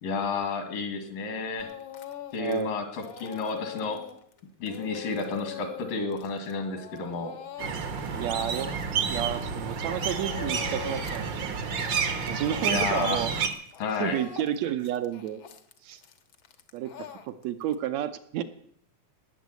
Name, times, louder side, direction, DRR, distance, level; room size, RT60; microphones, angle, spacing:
voice 1, 0.0-1.7 2.3-4.0 4.6-7.4 12.6-13.2 13.8-14.2, left 4 dB, 75° left, 7 dB, 3.7 m, -31 dB
Speech / Crying sobbing, 1.6-2.6 2.9-9.6 9.8-11.2 11.5-17.7, left 9 dB, 55° left, 1.4 m, -43 dB
voice 2, 2.4-2.7 8.1-8.7 9.1-11.7 12.3-13.3 14.0-15.4 15.8-16.0 16.7-18.4, right 11 dB, 70° right, 11 dB, 1.8 m, -31 dB
sound 1, 7.6-13.5, right 6 dB, 55° right, 1.3 m, -30 dB
19.0 x 7.3 x 9.4 m, 0.65 s
omnidirectional pair, 3.9 m